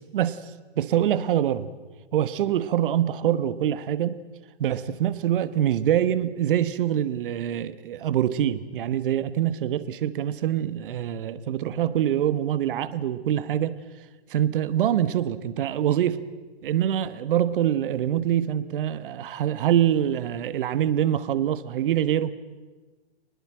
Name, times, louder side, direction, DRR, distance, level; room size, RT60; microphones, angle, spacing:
voice 1, 0.8-1.7 2.1-4.2 4.6-13.8 14.3-16.2 16.6-22.3, right 11 dB, 50° right, 15 dB, 1.4 m, -24 dB
25.5 x 20.0 x 7.6 m, 1.3 s
hypercardioid pair, 130°, 33 cm